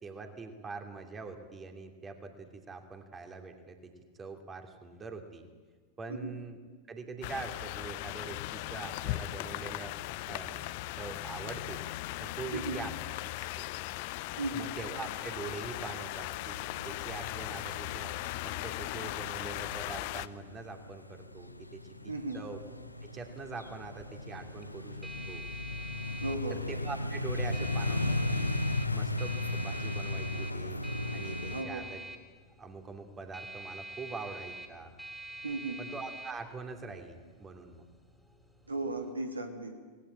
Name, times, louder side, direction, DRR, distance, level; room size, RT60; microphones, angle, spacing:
voice 1, 0.0-3.9 4.2-5.4 6.0-6.6 6.9-9.9 10.3-10.6 11.0-11.8 12.2-12.9 13.3-13.7 14.5-16.6 16.8-18.1 18.4-22.6 23.0-25.0 25.3-25.4 26.5-28.6 28.9-30.8 31.1-32.0 32.6-34.9 35.8-37.8, right 4 dB, 20° right, 5 dB, 2.8 m, -43 dB
sound 1, 7.2-20.3, left 18 dB, 50° left, 0.7 m, -38 dB
voice 2, 14.4-14.7 22.1-22.4 26.2-26.6 31.5-31.9 35.4-35.8 38.7-39.7, right 2 dB, 75° right, 4 dB, 2.8 m, -35 dB
sound 2, 14.9-31.6, left 2 dB, 85° left, 1.1 m, -37 dB
sound 3, 22.6-39.1, right 2 dB, 5° right, 3.7 m, -47 dB
27.0 x 19.0 x 8.8 m, 1.4 s
figure-of-eight pair, 90°, 0 cm